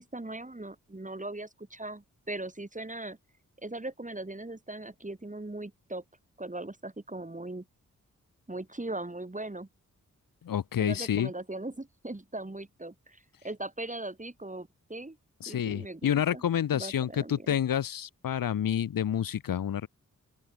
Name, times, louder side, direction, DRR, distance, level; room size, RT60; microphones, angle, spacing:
voice 1, 0.0-3.2 3.6-6.0 6.4-7.6 8.5-9.7 10.8-15.2 15.5-16.4 16.7-17.6, right 2 dB, 25° right, 6.5 m, -39 dB
voice 2, 10.4-11.3 15.4-19.9, left 9 dB, 80° left, 1.2 m, -29 dB
open air
cardioid pair, 50°, 33 cm